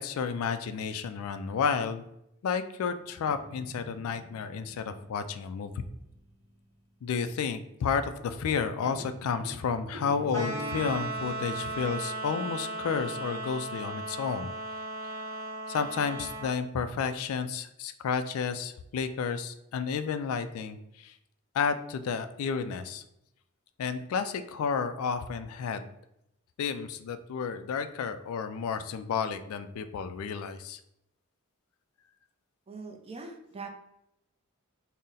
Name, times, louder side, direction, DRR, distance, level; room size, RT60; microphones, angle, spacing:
voice 1, 0.0-2.0 2.4-5.7 7.0-14.5 15.7-21.1 21.5-23.0 23.8-25.9 26.6-30.8, left 6 dB, 70° left, 10 dB, 0.3 m, -31 dB
Guitar, 3.1-6.7 8.2-8.6 8.8-11.8, right 1 dB, 55° right, 0.9 m, -44 dB
sound 1, 10.3-16.5, right 2 dB, 15° left, 0.9 m, -36 dB
voice 2, 32.7-33.7, right 4 dB, 25° right, 3 dB, 0.4 m, -42 dB
4.0 x 2.1 x 3.7 m, 0.81 s
head